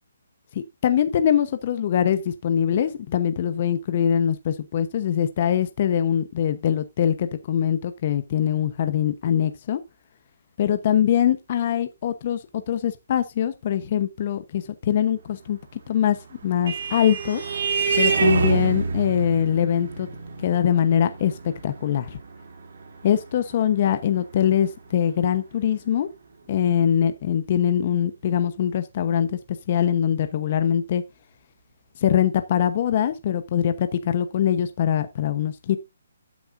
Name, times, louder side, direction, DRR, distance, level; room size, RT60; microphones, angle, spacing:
voice 1, 0.5-9.8 10.6-15.6 15.9-16.2 16.4-17.4 18.0-20.1 20.4-22.2 23.0-26.1 26.5-29.4 29.7-31.0 32.0-35.8, left 9 dB, 30° left, 1.0 m, -23 dB
Vehicle horn car horn honking, 16.0-25.0, right 5 dB, 50° right, 2.8 m, -27 dB
11.5 x 9.4 x 2.6 m
hypercardioid pair, 175°, 0 cm